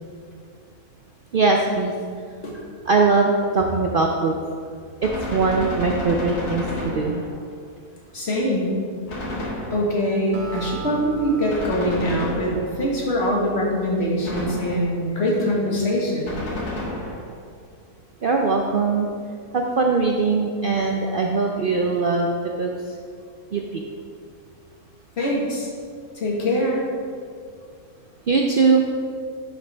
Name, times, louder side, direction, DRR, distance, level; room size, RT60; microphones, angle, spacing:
voice 1, 1.3-1.9 2.9-4.3 5.0-7.3 18.2-19.1 19.5-22.3 22.6-22.7 23.5-23.8 28.3-28.9, right 4 dB, 75° right, 1 dB, 0.5 m, -21 dB
Gunshot gunfire, 5.0-7.5 9.1-10.1 11.5-12.9 14.2-15.1 16.3-17.4, left 1 dB, 85° left, 2.1 m, -31 dB
voice 2, 8.1-8.7 9.4-16.3 25.2-25.7 26.1-26.9, equal, 45° left, -3 dB, 1.8 m, -23 dB
Acoustic guitar, 10.3-13.9, right 3 dB, 50° right, 0.8 m, -37 dB
10.5 x 6.6 x 3.4 m, 2.1 s
omnidirectional pair, 1.6 m